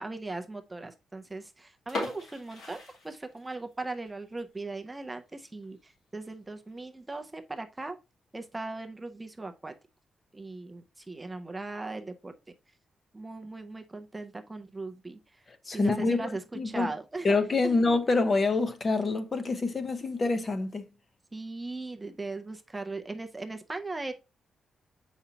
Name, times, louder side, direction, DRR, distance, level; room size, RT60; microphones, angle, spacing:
voice 1, 0.0-8.0 8.3-9.7 10.3-12.3 13.1-15.2 15.6-17.3 17.6-17.8 21.3-24.1, right 3 dB, 10° right, 0.4 m, -38 dB
sound 1, 1.8-3.7 4.1-4.2 4.7-4.9 5.3-5.4 5.6-5.7 6.5-6.8, left 2 dB, 80° left, 2.9 m, -38 dB
voice 2, 15.7-16.3 16.5-16.9 17.2-20.9, left 3 dB, 30° left, 0.7 m, -26 dB
7.0 x 5.0 x 2.8 m
wide cardioid pair, 165°, 0 cm